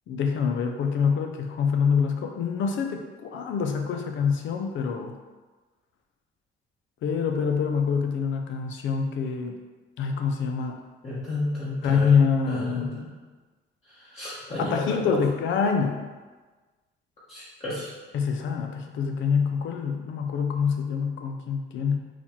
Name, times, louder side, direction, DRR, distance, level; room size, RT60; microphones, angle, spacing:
voice 1, 0.1-5.2 7.0-9.6 10.0-10.8 11.8-13.1 14.6-16.1 18.1-22.0, left 6 dB, 75° left, 4 dB, 0.5 m, -25 dB
voice 2, 11.0-12.1 12.5-13.1 14.1-15.2 17.3-17.9, left 1 dB, 30° left, -10 dB, 1.2 m, -32 dB
4.2 x 2.3 x 4.3 m, 1.3 s
cardioid pair, 90°, 20 cm